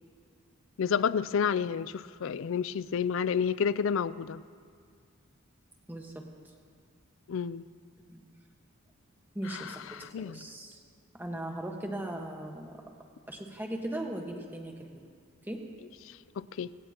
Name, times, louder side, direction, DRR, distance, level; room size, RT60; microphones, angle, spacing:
voice 1, 0.8-4.4 7.3-7.6 9.5-10.4 16.4-16.7, left 7 dB, 65° left, 0.4 m, -30 dB
voice 2, 5.9-6.5 8.1-8.2 9.3-10.8 11.2-12.8 13.3-15.1 15.4-15.6, right 1 dB, 10° right, 1.4 m, -38 dB
27.0 x 17.0 x 2.9 m
head